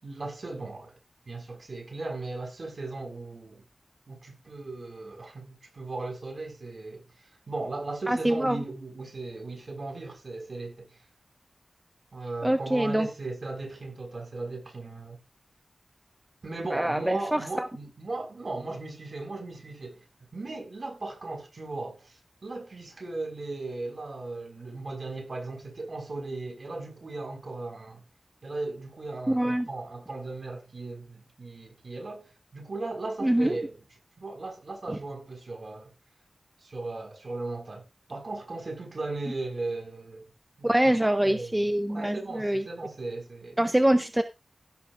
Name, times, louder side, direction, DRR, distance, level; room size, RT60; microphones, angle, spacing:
voice 1, 0.0-1.0 1.3-3.6 4.1-7.0 7.5-11.0 12.1-15.2 16.4-20.0 20.3-28.0 28.4-33.8 34.2-35.9 36.6-40.3 40.6-41.5 41.9-43.6, right 2 dB, 60° right, 6.9 m, -37 dB
voice 2, 8.1-8.6 12.4-13.1 16.7-17.7 29.3-29.7 33.2-33.6 40.6-42.6 43.6-44.2, right 1 dB, 15° right, 1.3 m, -24 dB
16.5 x 6.8 x 3.6 m
wide cardioid pair, 75°, 0 cm